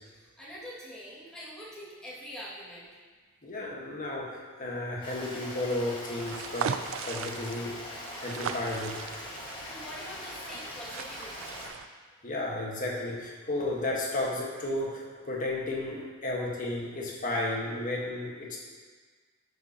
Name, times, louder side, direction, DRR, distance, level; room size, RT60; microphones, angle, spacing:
voice 1, 0.1-2.9 9.6-11.6, equal, 5° left, -9 dB, 2.0 m, -44 dB
voice 2, 3.4-6.8 7.0-7.8 8.2-9.0 12.2-18.6, left 2 dB, 40° left, -3 dB, 1.4 m, -33 dB
Stream, 5.0-11.7, left 1 dB, 25° left, 1.6 m, -42 dB
sound 1, 6.1-11.9, right 6 dB, 75° right, 0.4 m, -38 dB
10.0 x 6.3 x 2.8 m, 1.5 s
head